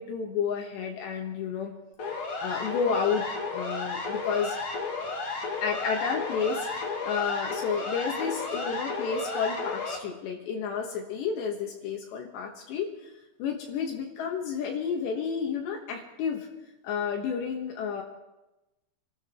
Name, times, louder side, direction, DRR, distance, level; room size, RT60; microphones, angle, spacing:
voice 1, 0.0-1.7 2.4-4.6 5.6-13.1 13.4-16.5 16.8-18.0, left 6 dB, 75° left, 1 dB, 3.4 m, -31 dB
Siren, 2.0-10.0, left 3 dB, 45° left, 2.0 m, -33 dB
27.5 x 13.5 x 3.7 m, 1.0 s
omnidirectional pair, 5.3 m